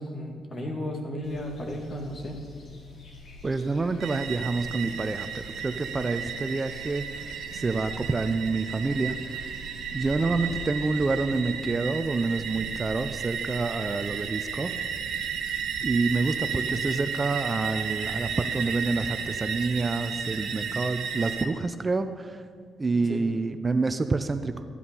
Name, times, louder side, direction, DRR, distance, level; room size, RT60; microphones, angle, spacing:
voice 1, 0.0-2.3 22.9-23.3, equal, 45° left, 1 dB, 2.2 m, -34 dB
sound 1, 1.2-11.6, left 4 dB, 60° left, 2.4 m, -49 dB
voice 2, 3.4-9.2 9.9-14.8 15.8-22.4 22.8-24.6, right 3 dB, 30° right, 9 dB, 0.6 m, -28 dB
sound 2, 4.0-21.4, right 7 dB, 80° right, 0.9 m, -33 dB
13.5 x 8.4 x 5.5 m, 2.1 s
cardioid pair, 75°, 0 cm